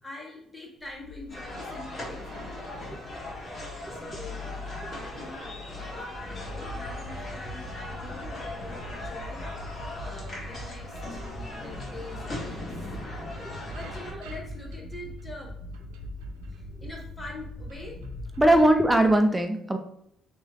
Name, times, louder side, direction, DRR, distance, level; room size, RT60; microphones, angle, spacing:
voice 1, 0.0-2.7 4.0-4.5 4.9-12.9 13.7-15.5 16.5-18.0 18.5-18.7, left 2 dB, 20° left, -1 dB, 1.2 m, -44 dB
sound 1, 0.8-19.1, left 3 dB, 90° right, 0.4 m, -45 dB
sound 2, 1.3-14.1, left 1 dB, 40° left, 1.4 m, -39 dB
sound 3, 6.1-18.7, equal, 65° left, 0.9 m, -42 dB
voice 2, 18.4-19.8, right 1 dB, 15° right, 5 dB, 0.6 m, -20 dB
3.1 x 3.1 x 2.4 m, 0.74 s
supercardioid pair, 60°, 0 cm